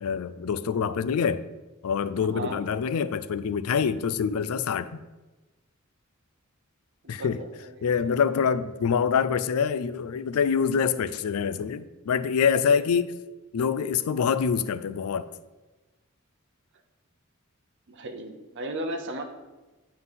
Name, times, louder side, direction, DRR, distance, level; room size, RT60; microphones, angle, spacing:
voice 1, 0.0-1.4 1.8-5.0 7.1-7.4 7.8-13.1 13.5-15.3, left 6 dB, 85° left, 15 dB, 0.4 m, -25 dB
voice 2, 2.1-2.6 7.0-8.0 17.9-19.2, right 1 dB, 55° right, 4 dB, 0.7 m, -36 dB
7.9 x 3.9 x 5.7 m, 1.2 s
head